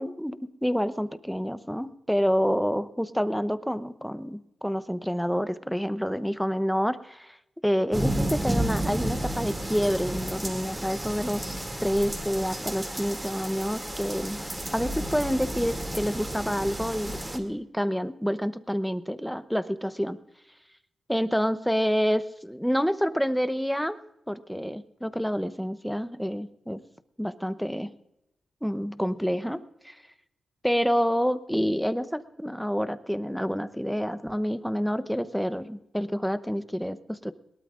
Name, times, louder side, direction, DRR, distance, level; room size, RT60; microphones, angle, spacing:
voice 1, 0.0-7.4 7.6-14.4 14.7-20.2 21.1-24.0 24.3-26.8 27.2-27.9 28.6-29.6 29.8-30.0 30.6-37.3, equal, ahead, 12 dB, 0.8 m, -28 dB
sound 1, 7.9-17.4, right 1 dB, 15° right, 2.5 m, -32 dB
21.5 x 18.5 x 2.5 m, 0.85 s
cardioid pair, 75°, 0 cm